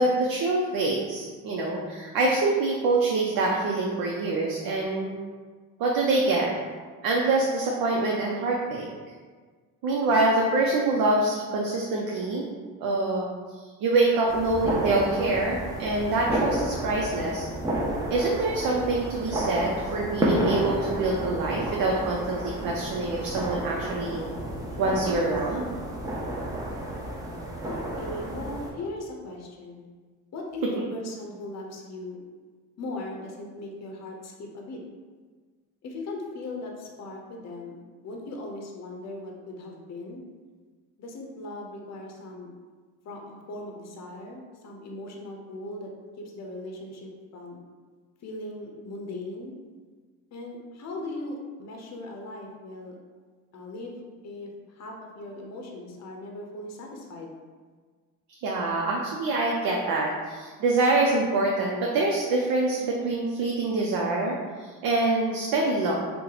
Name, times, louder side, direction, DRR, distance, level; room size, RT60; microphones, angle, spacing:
voice 1, 0.0-5.1 5.8-6.5 7.0-8.9 9.8-12.5 12.8-13.3 13.8-17.5 18.1-24.2 24.8-25.7 58.3-66.0, right 2 dB, 70° right, -2 dB, 0.6 m, -25 dB
sound 1, 14.3-28.7, right 1 dB, 10° right, 0.6 m, -31 dB
voice 2, 27.6-29.9 30.3-32.2 32.8-34.8 35.8-40.2 41.0-42.5 43.0-45.9 46.3-47.6 48.2-49.6 50.3-52.9 53.5-57.4, left 2 dB, 45° left, 1 dB, 0.7 m, -38 dB
2.8 x 2.1 x 3.9 m, 1.5 s
supercardioid pair, 80°, 37 cm